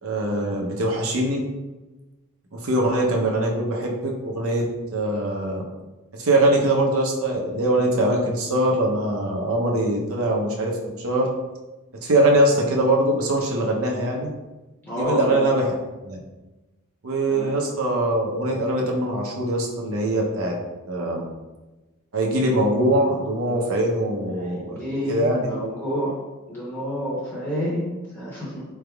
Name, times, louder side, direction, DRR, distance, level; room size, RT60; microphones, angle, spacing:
voice 1, 0.0-1.4 2.5-4.7 4.9-5.6 6.2-11.3 12.0-14.3 15.0-15.7 16.0-16.2 17.0-20.5 20.9-21.2 22.1-24.8 25.1-25.5, right 1 dB, 80° right, -1 dB, 0.7 m, -22 dB
voice 2, 14.8-15.4 17.3-17.5 24.4-26.2 26.5-28.6, equal, 10° left, -9 dB, 0.8 m, -29 dB
3.9 x 3.4 x 2.3 m, 1.1 s
head